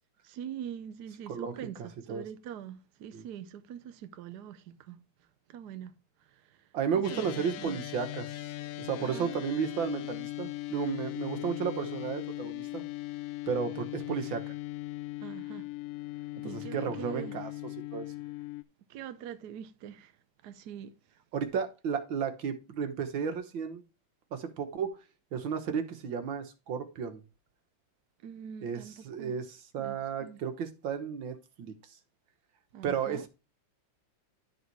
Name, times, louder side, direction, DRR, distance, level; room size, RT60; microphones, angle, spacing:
voice 1, 0.2-5.0 5.5-5.9 6.2-6.7 6.9-7.8 9.0-9.4 15.2-15.7 16.4-17.4 18.9-20.1 20.4-20.9 28.2-29.4 29.8-30.4 32.7-33.2, right 9 dB, 65° right, 1.3 m, -43 dB
voice 2, 1.3-2.2 3.1-3.2 6.7-8.3 8.8-12.8 13.5-14.5 16.4-17.5 17.9-18.1 21.3-23.8 24.3-24.9 25.3-27.2 28.6-31.7 32.8-33.3, right 6 dB, 90° right, 2.1 m, -33 dB
sound 1, 7.0-18.6, left 18 dB, 80° left, 0.7 m, -39 dB
11.5 x 4.2 x 4.6 m
omnidirectional pair, 2.0 m